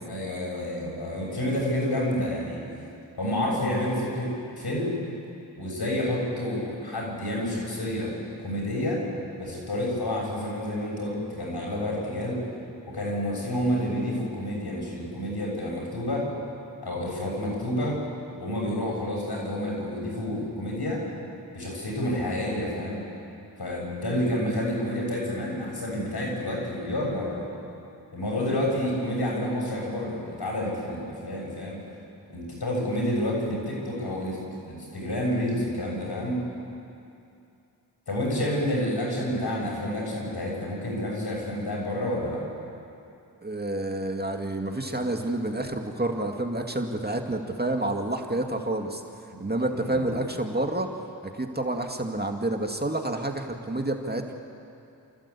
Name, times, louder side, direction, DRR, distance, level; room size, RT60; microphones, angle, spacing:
voice 1, 0.0-2.6 3.2-4.9 5.6-9.0 9.4-12.4 12.9-16.3 16.8-18.0 18.3-21.0 21.5-23.0 23.6-27.5 28.1-31.8 32.3-34.4 34.6-36.4 38.1-42.4 49.3-49.4 49.7-50.2, left 1 dB, 70° left, -2 dB, 7.4 m, -29 dB
voice 2, 43.4-49.0 49.4-50.9 51.4-54.3, right 1 dB, 25° right, 3 dB, 2.2 m, -29 dB
29.0 x 14.5 x 8.5 m, 2.7 s
cardioid pair, 40°, 41 cm